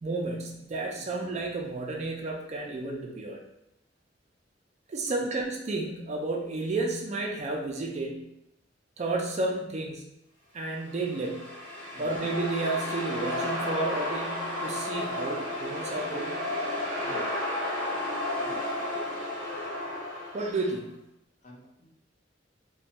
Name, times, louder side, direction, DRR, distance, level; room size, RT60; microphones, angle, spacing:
voice 1, 0.0-3.4 4.9-8.2 9.0-10.0 10.5-11.5 12.0-16.5 20.3-21.0, right 2 dB, 40° right, 0 dB, 0.4 m, -32 dB
sound 1, 10.8-20.7, left 1 dB, 5° left, 0.9 m, -33 dB
voice 2, 21.4-21.9, left 1 dB, 40° left, -3 dB, 0.6 m, -50 dB
2.5 x 2.2 x 2.9 m, 0.84 s
head